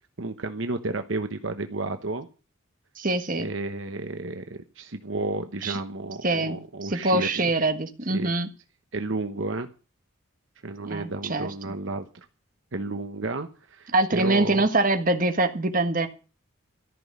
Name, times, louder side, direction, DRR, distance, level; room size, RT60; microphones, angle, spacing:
voice 1, 0.2-2.3 3.4-7.5 8.1-8.3 8.9-9.7 10.6-12.1 12.7-14.7, right 2 dB, 70° right, 8 dB, 1.0 m, -32 dB
voice 2, 3.0-3.5 5.6-5.8 6.2-8.5 10.8-11.7 13.9-16.1, right 2 dB, 40° right, 7 dB, 1.5 m, -24 dB
14.0 x 6.2 x 9.6 m, 0.36 s
head